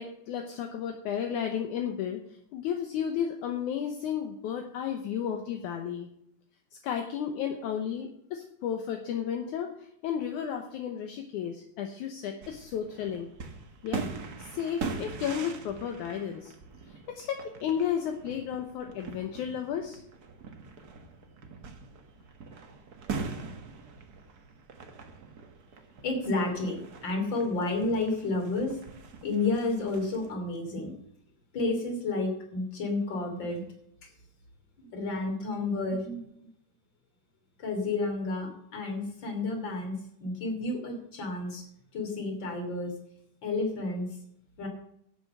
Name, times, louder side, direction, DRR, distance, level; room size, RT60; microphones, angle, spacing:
voice 1, 0.0-2.2 2.5-6.1 6.8-13.3 13.8-14.1 14.4-16.5 16.9-20.0, left 8 dB, 70° left, 5 dB, 2.3 m, -33 dB
sound 1, 12.4-30.3, right 4 dB, 55° right, 1.1 m, -42 dB
voice 2, 26.0-28.7 29.2-30.9 31.5-33.6 34.8-36.2 37.6-41.6 41.9-42.9 43.4-44.1 44.6-44.7, left 2 dB, 35° left, 4 dB, 3.3 m, -31 dB
11.0 x 8.2 x 6.7 m, 0.74 s
omnidirectional pair, 3.9 m